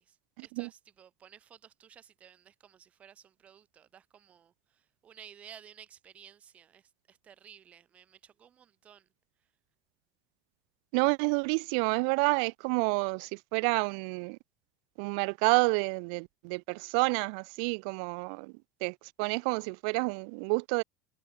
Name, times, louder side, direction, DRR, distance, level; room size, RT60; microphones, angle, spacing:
voice 1, 0.0-9.1 9.4-9.5, right 9 dB, 35° right, 7.1 m, -55 dB
voice 2, 10.9-14.4 15.0-18.5 18.8-20.8, right 38 dB, 70° right, 0.7 m, -29 dB
supercardioid pair, 105°, 4 cm